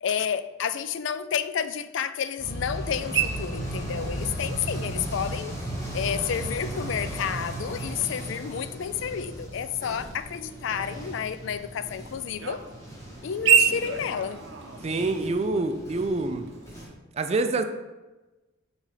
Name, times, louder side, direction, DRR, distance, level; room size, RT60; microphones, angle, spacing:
voice 1, 0.0-5.5 5.9-12.6 13.2-14.4, left 7 dB, 65° left, 0.3 m, -30 dB
sound 1, 2.4-16.9, right 1 dB, 15° left, 1.3 m, -36 dB
sound 2, 2.8-17.0, right 7 dB, 60° right, 0.7 m, -32 dB
voice 2, 14.8-16.5 17.1-17.6, right 3 dB, 30° right, 0.3 m, -26 dB
5.6 x 3.9 x 4.7 m
head